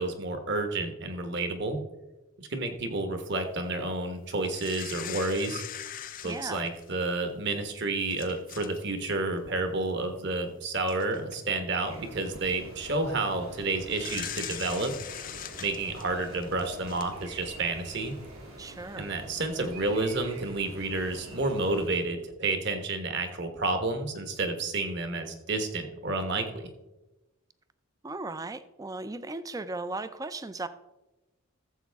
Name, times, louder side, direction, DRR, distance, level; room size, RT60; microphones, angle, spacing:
voice 1, 0.0-1.8 2.4-5.6 6.2-14.9 15.6-18.2 19.0-26.7, right 2 dB, 55° right, 7 dB, 1.3 m, -30 dB
sound 1, 4.4-7.1 7.7-7.8 8.1-8.8 9.1-9.3 10.4-10.5 10.9-11.4 12.1-12.4 13.9-17.5 18.0-18.1, left 10 dB, 40° left, 0.5 m, -41 dB
voice 2, 6.2-6.7 18.6-19.1 28.0-30.7, right 2 dB, 15° right, 13 dB, 0.4 m, -37 dB
sound 2, 11.8-21.9, right 1 dB, 85° right, 2.8 m, -46 dB
14.5 x 7.5 x 3.5 m, 1.0 s
head